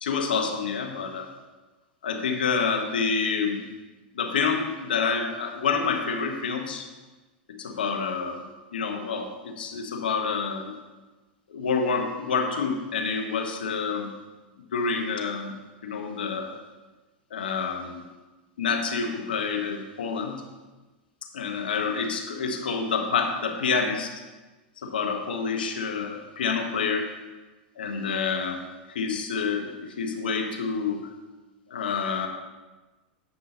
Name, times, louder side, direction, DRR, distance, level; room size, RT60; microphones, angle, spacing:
voice 1, 0.0-1.3 2.0-3.7 4.1-6.9 7.6-8.4 8.7-10.8 11.5-14.1 14.7-15.5 15.8-16.6 17.3-18.0 18.6-20.4 21.3-24.1 24.8-27.1 27.8-28.6 28.9-31.0 31.7-32.3, left 5 dB, 85° left, 3 dB, 1.2 m, -28 dB
8.4 x 5.6 x 3.9 m, 1.2 s
hypercardioid pair, 110°, 5 cm